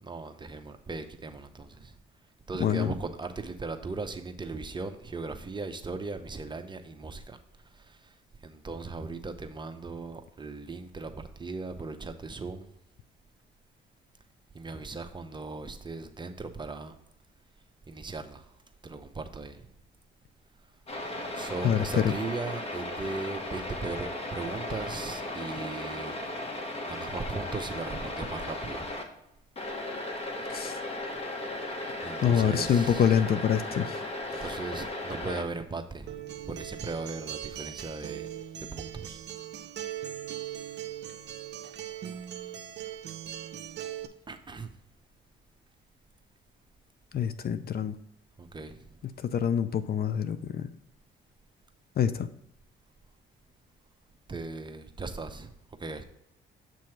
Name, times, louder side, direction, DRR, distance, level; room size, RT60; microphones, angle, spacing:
voice 1, 0.0-1.9 2.5-7.4 7.7-8.2 8.4-12.7 14.5-16.9 17.9-18.5 18.8-19.7 21.3-26.2 26.9-28.9 32.0-33.2 34.3-38.3 38.7-39.2 44.3-44.7 48.4-49.0 54.3-55.5 55.8-56.1, right 3 dB, 25° right, 0.8 m, -38 dB
voice 2, 2.6-2.9 21.6-22.1 30.5-30.8 32.2-34.0 47.1-48.0 49.2-50.7 52.0-52.3, left 8 dB, 50° left, 0.5 m, -26 dB
sound 1, 20.9-29.0 29.6-35.4, left 2 dB, 30° left, 1.3 m, -36 dB
Acoustic guitar, 36.1-44.1, right 11 dB, 60° right, 0.6 m, -40 dB
7.6 x 3.0 x 5.7 m
cardioid pair, 90°, 20 cm